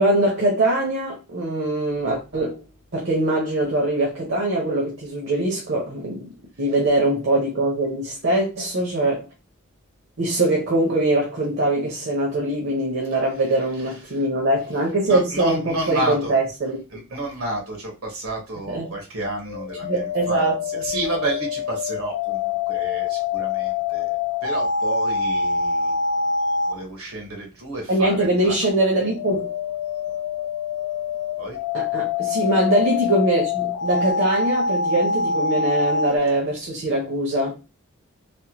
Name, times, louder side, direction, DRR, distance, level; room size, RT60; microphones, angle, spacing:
voice 1, 0.0-2.6 2.9-6.3 6.6-9.3 10.2-16.8 18.7-18.9 19.9-20.6 27.9-29.5 31.7-37.5, right 1 dB, 55° right, 0.8 m, -22 dB
voice 2, 13.7-14.2 15.1-16.4 16.9-26.0 26.7-28.6 31.4-31.6, right 2 dB, 80° right, 1.2 m, -31 dB
sound 1, 19.5-26.8 28.8-36.1, left 4 dB, 85° left, 0.3 m, -25 dB
3.4 x 2.2 x 2.9 m
head